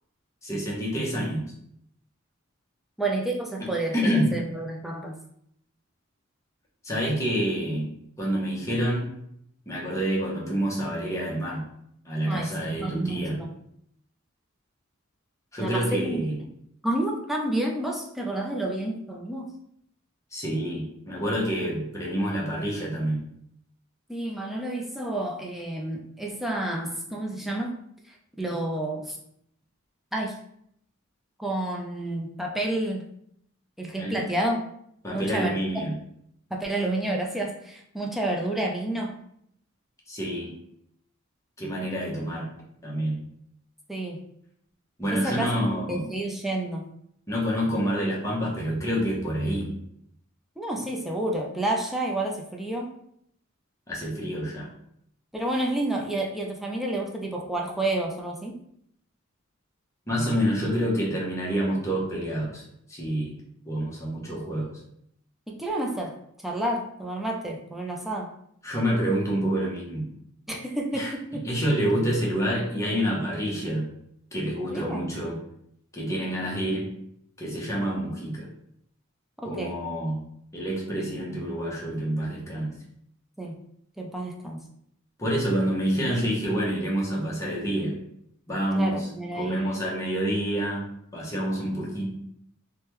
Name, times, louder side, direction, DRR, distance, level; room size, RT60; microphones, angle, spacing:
voice 1, 0.4-1.4 3.6-4.3 6.8-7.9 8.2-9.0 9.7-11.6 12.0-13.4 15.5-16.4 20.3-23.2 34.0-34.1 35.0-35.9 40.1-40.5 41.6-42.5 42.8-43.2 45.0-46.1 47.3-49.7 53.9-54.7 60.1-62.6 62.9-63.3 63.7-64.7 68.6-70.1 70.9-71.1 71.4-73.9 74.3-75.4 75.9-76.9 77.4-78.5 79.4-80.2 80.5-82.7 85.2-87.9 88.5-89.1 89.4-90.8 91.1-92.1, equal, 15° left, -4 dB, 0.8 m, -27 dB
voice 2, 3.0-5.2 12.3-13.5 15.6-16.2 16.8-19.5 24.1-27.7 28.1-29.2 30.1-30.4 31.4-33.0 33.8-34.6 35.1-35.6 36.5-39.1 43.9-44.2 45.1-46.9 50.6-52.9 55.3-58.5 65.5-66.1 66.4-68.3 70.5-71.4 74.7-75.1 79.4-79.8 83.4-83.6 84.0-84.6 88.7-89.8, right 1 dB, ahead, -1 dB, 0.4 m, -30 dB
3.2 x 2.2 x 3.0 m, 0.72 s
head